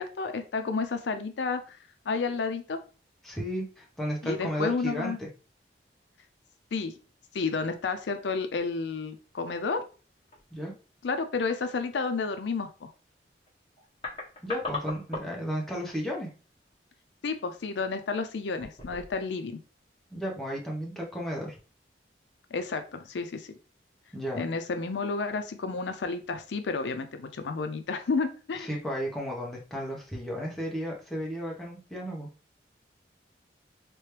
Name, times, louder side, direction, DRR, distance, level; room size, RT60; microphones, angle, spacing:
voice 1, 0.0-1.8 2.1-2.8 4.2-5.2 6.7-6.9 7.3-9.8 11.0-12.9 17.2-19.6 22.5-23.6 24.3-28.7, left 4 dB, 80° left, 8 dB, 0.5 m, -31 dB
voice 2, 3.2-5.3 10.5-10.7 14.4-16.3 20.1-21.6 24.1-24.5 28.6-32.3, equal, ahead, -3 dB, 0.9 m, -33 dB
sound 1, 9.1-9.3 10.0-10.5 13.4-13.5 13.8-15.5 15.8-16.0 16.7-16.9 17.5-17.7 18.5-19.3 19.6-19.7, left 3 dB, 30° left, 1.3 m, -39 dB
3.3 x 3.1 x 3.2 m, 0.35 s
head